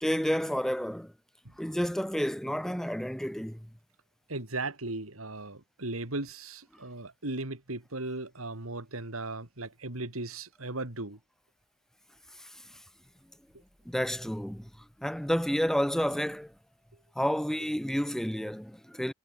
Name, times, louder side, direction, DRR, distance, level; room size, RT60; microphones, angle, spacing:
voice 1, 0.0-1.1 1.6-3.7 12.4-12.6 13.9-14.7 15.0-16.5 17.2-19.1, equal, ahead, 0.6 m, -30 dB
voice 2, 4.3-11.2, right 2 dB, 85° right, 3.3 m, -37 dB
head